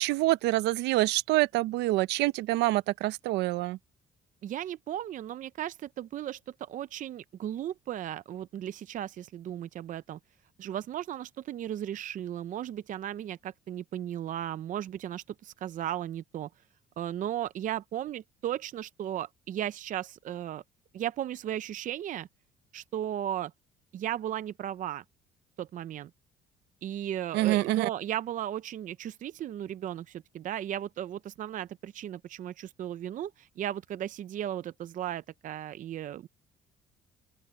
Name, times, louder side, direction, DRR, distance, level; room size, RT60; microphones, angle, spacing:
voice 1, 0.0-3.8 27.3-27.9, right 18 dB, 90° right, 0.7 m, -26 dB
voice 2, 4.4-10.2 10.6-16.5 17.0-20.6 20.9-22.3 22.7-23.5 23.9-25.0 25.6-26.1 26.8-36.3, right 11 dB, 50° right, 0.6 m, -35 dB
open air
cardioid pair, 110°, 17 cm